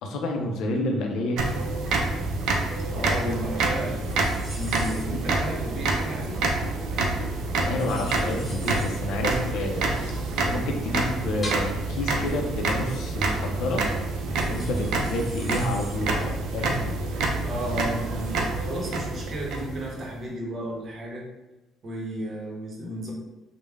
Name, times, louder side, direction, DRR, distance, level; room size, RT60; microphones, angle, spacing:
voice 1, 0.0-1.4 7.6-9.8 10.5-13.8 14.5-16.8, left 1 dB, 75° left, 2 dB, 0.4 m, -29 dB
sound 1, 1.4-20.1, right 2 dB, 75° right, 0.4 m, -27 dB
voice 2, 2.9-4.0 4.5-6.5 17.4-21.3 21.8-23.1, equal, 50° right, -2 dB, 0.8 m, -33 dB
sound 2, 4.0-21.0, equal, 30° left, 1.1 m, -45 dB
3.1 x 2.1 x 2.3 m, 1.1 s
supercardioid pair, 80°, 0 cm